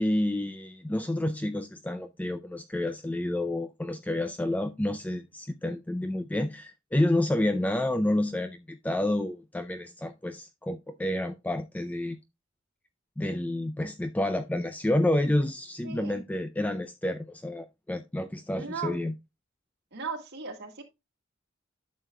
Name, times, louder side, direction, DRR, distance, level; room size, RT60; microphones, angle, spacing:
voice 1, 0.0-12.2 13.2-19.1, left 1 dB, 10° left, 0.3 m, -29 dB
voice 2, 15.8-16.2 18.5-19.0 19.9-20.8, right 5 dB, 55° right, 1.8 m, -37 dB
11.0 x 6.5 x 2.2 m
head